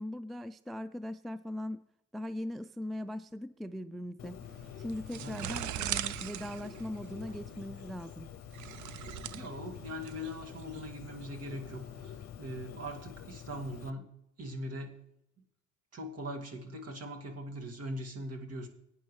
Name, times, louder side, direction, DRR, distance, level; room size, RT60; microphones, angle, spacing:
voice 1, 0.0-1.8 2.1-4.4 4.8-8.3, left 1 dB, ahead, 14 dB, 0.3 m, -40 dB
Bird, 4.2-13.9, left 9 dB, 60° left, 0.7 m, -47 dB
sound 1, 4.4-12.1, right 12 dB, 75° right, 0.6 m, -41 dB
voice 2, 9.3-14.1 14.4-14.9 15.9-18.7, equal, 55° right, 2 dB, 2.2 m, -41 dB
17.0 x 9.4 x 3.2 m, 0.80 s
cardioid pair, 90°, 30 cm